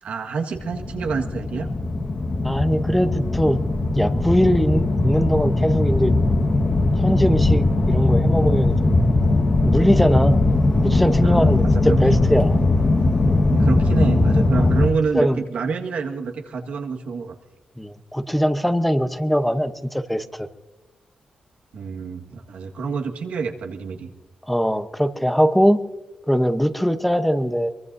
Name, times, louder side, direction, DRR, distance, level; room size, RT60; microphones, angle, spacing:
voice 1, 0.0-1.7 11.2-11.5 11.9-12.0 13.5-17.3 21.7-24.1, right 5 dB, 85° right, 2 dB, 1.7 m, -27 dB
sound 1, 0.5-14.9, left 2 dB, 40° left, 1.5 m, -19 dB
voice 2, 2.4-3.6 3.9-6.1 7.0-9.0 9.6-10.4 10.8-12.6 15.1-15.4 17.8-20.5 24.5-25.8 26.3-27.7, equal, 5° left, 9 dB, 0.9 m, -21 dB
23.0 x 23.0 x 2.7 m, 0.97 s
cardioid pair, 105°, 2 cm